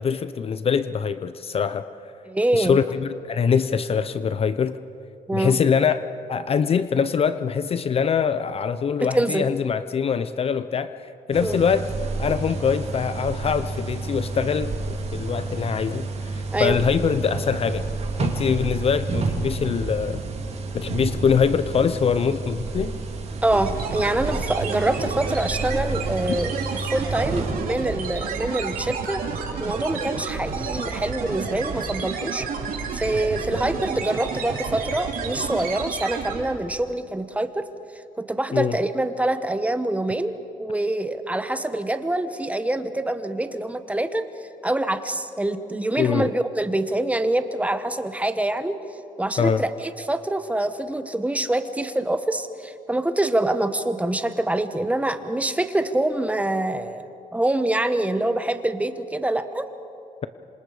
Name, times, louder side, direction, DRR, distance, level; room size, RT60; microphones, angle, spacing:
voice 1, 0.0-1.8 2.5-4.8 5.3-6.0 6.3-11.9 12.2-17.9 18.2-20.2 20.7-23.0 26.3-26.4 38.5-38.7 46.0-46.3 49.4-49.6, left 6 dB, 40° left, 12 dB, 0.6 m, -23 dB
voice 2, 2.2-2.8 5.3-5.6 9.0-9.5 11.4-11.6 16.5-16.8 23.4-26.6 26.9-29.2 29.6-32.5 32.9-37.6 38.2-40.3 40.6-44.2 44.6-48.8 49.2-57.0 57.3-59.7, right 1 dB, 10° right, 10 dB, 1.0 m, -25 dB
sound 1, 11.3-27.5, right 3 dB, 45° right, 2.7 m, -30 dB
sound 2, 23.5-36.7, right 5 dB, 75° right, 2.9 m, -30 dB
26.5 x 26.0 x 5.0 m, 2.7 s
cardioid pair, 125°, 15 cm